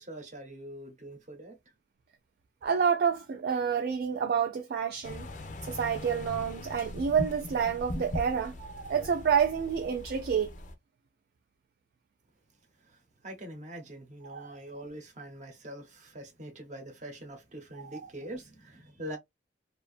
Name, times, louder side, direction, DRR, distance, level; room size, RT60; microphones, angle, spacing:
voice 1, 0.0-1.6 12.9-19.2, right 1 dB, 40° right, 0.8 m, -44 dB
voice 2, 2.6-5.3 5.7-10.5 14.3-14.6 17.9-18.0, right 7 dB, 60° right, 0.3 m, -28 dB
sound 1, 5.0-10.7, left 1 dB, 45° left, 0.5 m, -40 dB
2.6 x 2.3 x 2.3 m
head